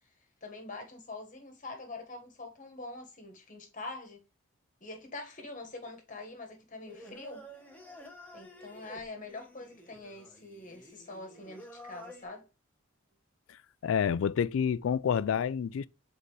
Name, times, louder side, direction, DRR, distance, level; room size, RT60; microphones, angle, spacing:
voice 1, 0.4-4.2 4.8-7.5 8.3-12.5, left 2 dB, 40° left, 1.5 m, -44 dB
Singing, 6.8-12.2, equal, 10° left, 1.1 m, -51 dB
voice 2, 13.8-15.9, left 7 dB, 75° left, 0.3 m, -28 dB
7.5 x 4.0 x 3.2 m
head